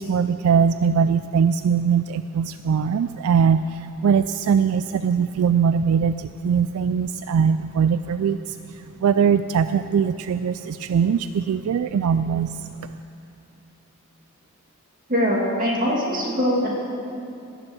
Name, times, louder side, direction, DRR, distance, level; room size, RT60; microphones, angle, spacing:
voice 1, 0.0-8.6 9.0-12.7, right 6 dB, 75° right, 11 dB, 0.3 m, -21 dB
voice 2, 15.1-16.7, equal, 40° right, -3 dB, 2.7 m, -22 dB
16.0 x 7.0 x 8.1 m, 2.8 s
head